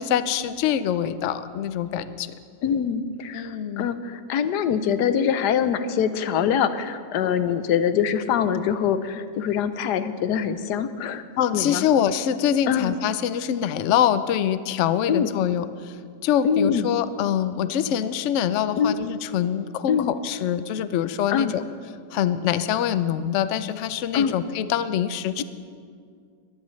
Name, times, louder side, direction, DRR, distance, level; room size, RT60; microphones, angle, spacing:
voice 1, 0.0-2.3 3.3-3.9 11.4-16.0 16.2-21.6 22.1-25.4, left 9 dB, 85° left, 13 dB, 0.6 m, -24 dB
voice 2, 2.6-11.2 11.5-11.8 12.7-12.9 15.1-15.3 16.4-16.9 18.8-18.9 19.9-20.1 21.3-21.5 24.1-24.3, left 8 dB, 70° left, 11 dB, 1.2 m, -24 dB
21.5 x 15.5 x 3.2 m, 2.1 s
omnidirectional pair, 1.9 m